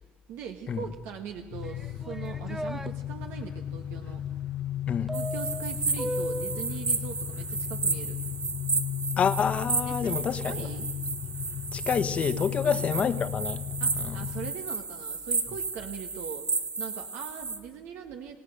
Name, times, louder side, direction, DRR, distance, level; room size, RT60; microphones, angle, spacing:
voice 1, 0.3-4.2 5.1-8.2 9.8-10.9 12.6-12.8 13.8-16.5 16.8-18.4, right 8 dB, 80° right, 1.6 m, -41 dB
sound 1, 1.5-14.5, left 11 dB, 60° left, 0.8 m, -35 dB
sound 2, 1.6-2.9 5.1-6.7, right 1 dB, 10° right, 0.7 m, -35 dB
sound 3, 5.1-17.6, right 4 dB, 25° right, 2.5 m, -33 dB
voice 2, 9.2-10.7 11.7-13.6 14.0-14.1, left 7 dB, 40° left, 1.2 m, -28 dB
28.0 x 17.5 x 6.6 m
cardioid pair, 120°, 3 cm